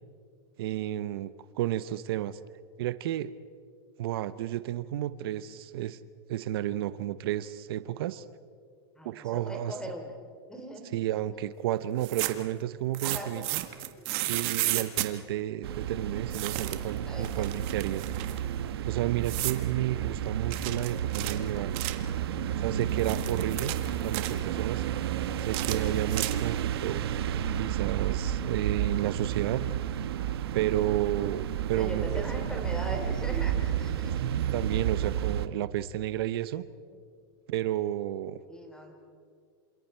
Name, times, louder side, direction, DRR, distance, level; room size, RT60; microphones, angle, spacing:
voice 1, 0.6-2.4 2.8-3.3 4.0-6.0 6.3-8.2 9.0-9.7 10.9-13.6 14.3-18.0 18.9-21.8 22.6-23.7 24.0-24.8 25.4-27.0 27.6-29.6 30.5-32.2 34.2-36.6 37.5-38.4, right 13 dB, 75° right, 14 dB, 0.8 m, -31 dB
voice 2, 9.0-10.1 10.5-11.0 11.2-11.4 13.0-13.5 14.0-14.1 17.0-17.5 24.3-24.7 25.7-26.0 31.8-34.2 38.4-38.9, equal, 5° left, 3 dB, 3.6 m, -40 dB
sound 1, 11.9-12.5 12.9-15.1 16.3-16.9 17.2-18.4 19.2-19.6 20.5-22.1 22.8-24.4 25.4-26.6, right 17 dB, 45° right, 1.6 m, -33 dB
sound 2, 15.6-35.5, right 10 dB, 90° right, 1.2 m, -31 dB
27.5 x 27.5 x 4.5 m, 2.1 s
supercardioid pair, 145°, 13 cm